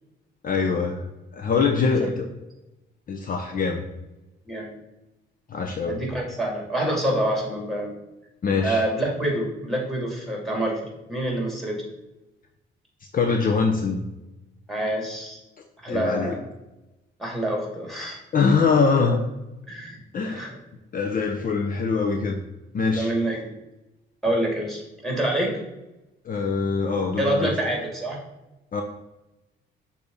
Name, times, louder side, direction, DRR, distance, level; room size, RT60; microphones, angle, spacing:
voice 1, 0.4-1.1 1.3-2.2 3.1-3.8 5.5-6.0 8.4-8.8 13.1-14.0 15.9-16.3 18.3-19.2 20.1-20.5 20.9-22.4 22.7-23.1 26.2-27.5 28.7-28.8, left 4 dB, 45° left, 3 dB, 0.7 m, -23 dB
voice 2, 5.8-7.9 8.6-10.8 11.1-11.8 14.7-15.4 15.8-16.4 17.2-18.2 19.7-20.0 20.2-20.5 22.9-23.5 24.2-25.6 27.2-28.2, right 1 dB, ahead, -1 dB, 2.2 m, -26 dB
6.6 x 2.8 x 5.1 m, 0.96 s
cardioid pair, 90°, 20 cm